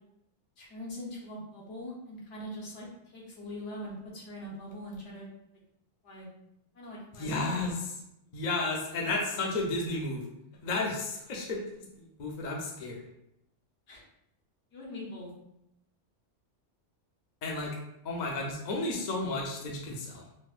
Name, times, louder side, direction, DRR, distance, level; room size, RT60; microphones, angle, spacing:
voice 1, 0.6-5.3 6.0-6.3 6.7-7.7 13.9-14.0 14.7-15.3, left 1 dB, 70° left, -3 dB, 1.2 m, -42 dB
voice 2, 7.1-7.9 8.3-10.2 10.6-11.6 11.9-13.0 17.4-17.8 18.0-20.2, left 2 dB, 50° left, -1 dB, 0.6 m, -32 dB
4.2 x 2.1 x 2.4 m, 0.81 s
omnidirectional pair, 1.3 m